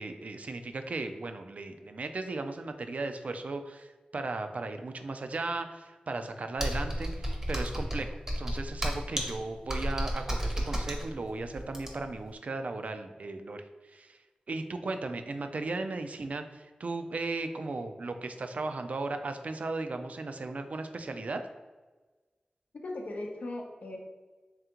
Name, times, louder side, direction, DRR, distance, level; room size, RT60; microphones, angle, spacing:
voice 1, 0.0-14.2 14.5-21.4, right 3 dB, 55° right, 7 dB, 0.3 m, -36 dB
Computer keyboard, 6.6-12.2, equal, 15° right, 0.7 m, -32 dB
voice 2, 22.7-24.0, left 2 dB, 70° left, 1 dB, 0.6 m, -38 dB
3.6 x 3.3 x 2.9 m, 1.3 s
wide cardioid pair, 80°, 3 cm